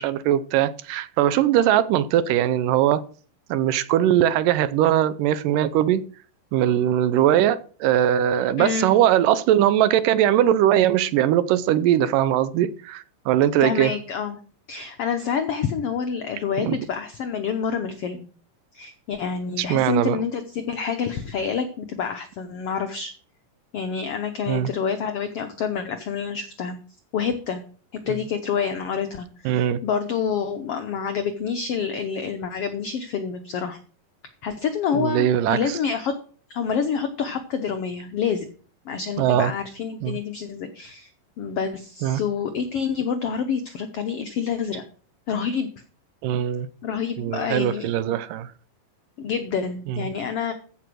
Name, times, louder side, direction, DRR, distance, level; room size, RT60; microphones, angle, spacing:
voice 1, 0.0-3.0 3.5-6.0 6.5-13.9 16.6-16.8 19.6-20.2 24.5-24.7 29.5-29.8 34.9-35.6 39.2-39.5 40.0-40.2 42.0-42.2 46.2-46.7 47.2-48.5, right 11 dB, 80° right, 2.2 m, -20 dB
voice 2, 8.6-8.9 13.6-14.4 14.7-18.3 18.7-23.1 23.7-26.8 27.1-27.6 27.9-33.8 34.4-36.1 36.5-38.5 38.8-41.1 41.4-44.8 45.3-45.7 46.8-47.9 49.2-50.5, left 6 dB, 90° left, 1.3 m, -27 dB
14.5 x 5.8 x 6.2 m
omnidirectional pair, 4.1 m